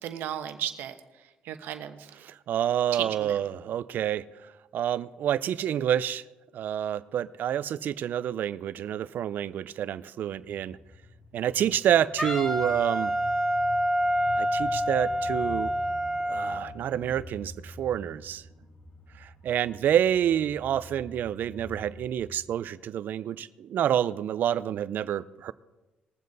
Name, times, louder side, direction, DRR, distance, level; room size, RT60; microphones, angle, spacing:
voice 1, 0.0-2.1 2.9-3.4, right 10 dB, 90° right, 8 dB, 1.0 m, -35 dB
voice 2, 2.2-4.3 4.7-6.2 6.5-10.8 11.3-13.1 14.4-15.7 16.3-18.4 19.2-25.5, right 10 dB, 70° right, 17 dB, 0.5 m, -28 dB
sound 1, 10.3-22.3, left 1 dB, 65° left, 2.1 m, -46 dB
Wind instrument woodwind instrument, 12.2-16.6, equal, 15° left, 1.8 m, -27 dB
20.5 x 7.5 x 4.0 m, 1.1 s
cardioid pair, 85°, 3 cm